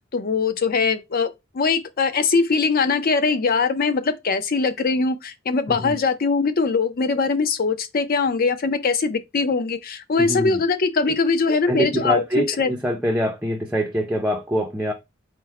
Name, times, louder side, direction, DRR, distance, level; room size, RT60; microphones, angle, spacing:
voice 1, 0.1-12.7, left 4 dB, 45° left, 0.5 m, -22 dB
voice 2, 10.2-10.6 11.1-11.2 11.5-14.9, equal, 5° right, 0.5 m, -24 dB
4.4 x 2.1 x 4.6 m
head